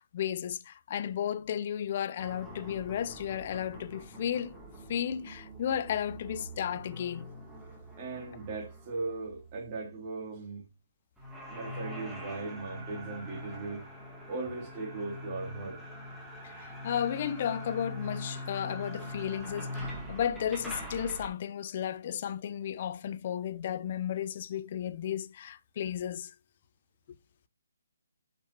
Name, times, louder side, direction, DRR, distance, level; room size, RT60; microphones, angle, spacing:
voice 1, 0.0-4.5 4.9-7.3 16.4-26.3, left 9 dB, 40° left, 0.6 m, -34 dB
sound 1, 2.2-10.2 11.2-21.3, equal, 5° right, 2.5 m, -43 dB
voice 2, 8.0-10.6 11.5-13.8 14.3-15.8, right 3 dB, 30° right, 3.0 m, -38 dB
11.5 x 5.7 x 2.9 m
hypercardioid pair, 150°, 0 cm